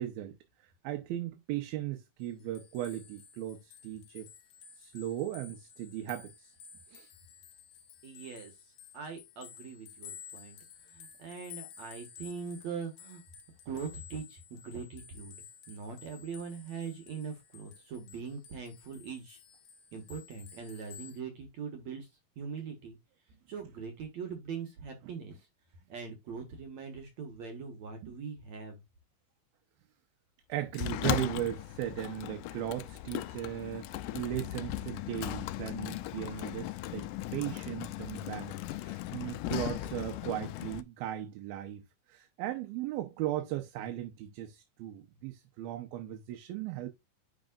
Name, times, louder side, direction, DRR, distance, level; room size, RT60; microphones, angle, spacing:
voice 1, 0.0-4.3 4.8-6.5 6.9-7.1 28.0-28.1 30.5-46.9, right 13 dB, 85° right, 2.8 m, -37 dB
sound 1, 2.2-21.2, left 8 dB, 65° left, 2.0 m, -53 dB
voice 2, 8.0-8.7 8.9-10.6 10.9-13.2 13.7-15.3 15.7-19.4 19.9-22.1 22.4-23.0 23.5-25.4 25.9-28.8, right 5 dB, 55° right, 2.4 m, -42 dB
Sliding door, 30.7-40.8, left 14 dB, 80° left, 1.8 m, -37 dB
10.5 x 4.8 x 2.5 m
omnidirectional pair, 4.2 m